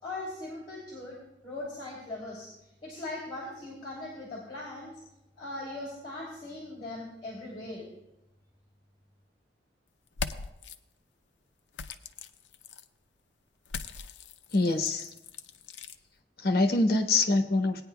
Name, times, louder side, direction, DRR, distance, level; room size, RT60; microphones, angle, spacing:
voice 1, 0.0-2.5 2.8-4.9 5.4-7.9, left 2 dB, 30° left, -4 dB, 2.9 m, -40 dB
sound 1, 10.1-10.8 11.7-12.9 13.7-16.0, left 5 dB, 90° left, 0.6 m, -40 dB
voice 2, 14.5-15.1 16.4-17.8, left 2 dB, 55° left, 5 dB, 1.2 m, -24 dB
18.5 x 9.7 x 2.3 m, 0.90 s
head